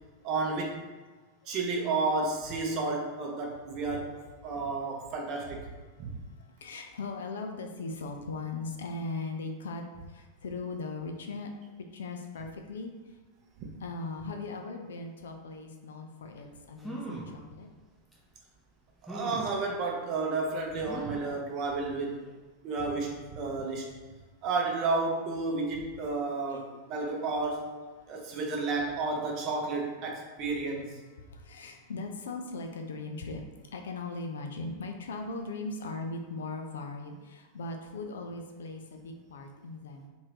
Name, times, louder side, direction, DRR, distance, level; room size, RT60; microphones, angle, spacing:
voice 1, 0.2-0.8 1.5-4.2 4.4-5.6 6.0-6.2 19.0-22.2 22.6-23.9 24.4-27.7 28.1-30.9, right 3 dB, 40° right, 1 dB, 0.7 m, -31 dB
voice 2, 6.0-11.5 11.9-13.2 13.8-17.7 26.5-26.8 28.0-28.4 31.2-40.1, left 3 dB, 65° left, 4 dB, 0.4 m, -39 dB
sound 1, 16.4-16.5 16.8-17.4 18.1-18.2 19.1-19.6 20.9-21.3 21.9-22.0 22.3-22.4, right 1 dB, ahead, 0.7 m, -40 dB
2.7 x 2.6 x 3.4 m, 1.3 s
figure-of-eight pair, 90°, 0 cm